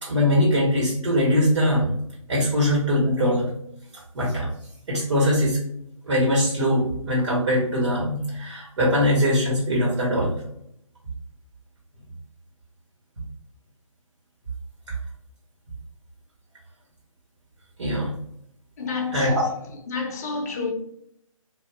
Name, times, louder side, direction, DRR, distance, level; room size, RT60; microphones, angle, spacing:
voice 1, 0.0-1.9 2.3-3.5 4.1-4.5 4.9-5.6 6.0-10.4 14.9-15.0 17.8-18.2 19.1-19.5, equal, 55° right, 1.3 m, -22 dB
voice 2, 18.8-19.3 19.9-20.7, left 4 dB, 30° left, 0.6 m, -29 dB
2.5 x 2.3 x 4.0 m
hypercardioid pair, 160°, 18 cm